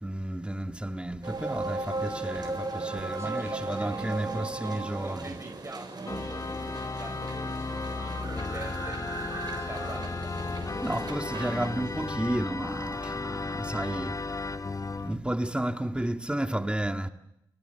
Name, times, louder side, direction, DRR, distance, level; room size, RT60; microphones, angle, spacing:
voice 1, 0.0-5.4 8.1-8.2 10.8-14.2 15.0-17.1, right 1 dB, 10° right, 1.7 m, -32 dB
sound 1, 1.2-12.1, right 3 dB, 45° right, 7.3 m, -37 dB
voice 2, 3.2-10.4, right 2 dB, 25° right, 5.9 m, -44 dB
Organ, 6.1-15.2, left 3 dB, 35° left, 1.0 m, -34 dB
29.0 x 27.0 x 6.8 m
supercardioid pair, 45°, 10 cm